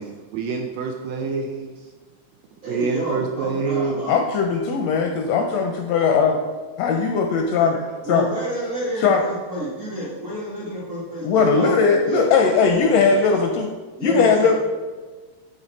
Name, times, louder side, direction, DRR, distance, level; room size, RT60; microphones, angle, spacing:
voice 1, 0.0-1.8 2.6-4.0, right 5 dB, 80° right, 3 dB, 1.5 m, -26 dB
voice 2, 2.6-4.2 8.0-13.4 14.0-14.5, equal, 45° right, -7 dB, 1.0 m, -30 dB
voice 3, 4.1-6.4 6.8-7.8 8.1-8.3 9.0-9.2 11.2-13.7 14.0-14.5, left 5 dB, 80° left, 3 dB, 1.5 m, -19 dB
10.5 x 4.0 x 4.0 m, 1.4 s
omnidirectional pair, 3.4 m